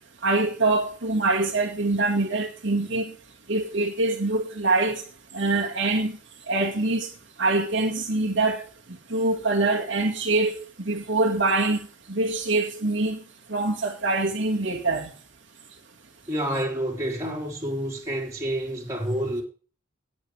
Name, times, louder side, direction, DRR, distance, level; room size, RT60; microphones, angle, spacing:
voice 1, 0.2-3.1 3.5-5.0 5.3-6.2 6.5-7.1 7.4-8.6 9.1-11.8 12.1-13.2 13.5-15.1, right 2 dB, 65° right, 1.9 m, -24 dB
voice 2, 16.3-19.4, right 1 dB, 15° right, 4.5 m, -28 dB
18.5 x 8.1 x 3.4 m
head